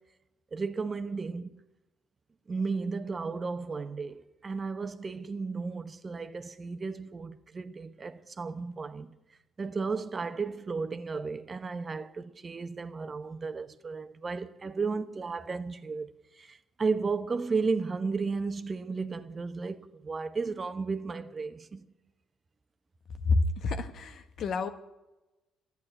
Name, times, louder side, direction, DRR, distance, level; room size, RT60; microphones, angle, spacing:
voice 1, 0.5-1.6 2.5-9.1 9.6-21.8, right 4 dB, 35° right, 0.9 m, -34 dB
voice 2, 23.2-24.7, left 3 dB, 60° left, 1.2 m, -28 dB
12.0 x 8.5 x 9.7 m
hypercardioid pair, 55°, 0 cm